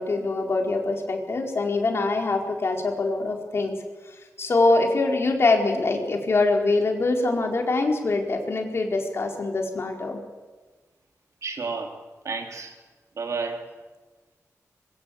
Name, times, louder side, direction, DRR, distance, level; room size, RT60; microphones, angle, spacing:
voice 1, 0.0-3.8 4.1-10.2, left 3 dB, 50° left, 2 dB, 4.4 m, -24 dB
voice 2, 11.4-12.8 13.2-13.7, right 4 dB, 65° right, 4 dB, 3.7 m, -32 dB
25.5 x 22.5 x 8.6 m, 1.2 s
wide cardioid pair, 165°, 6 cm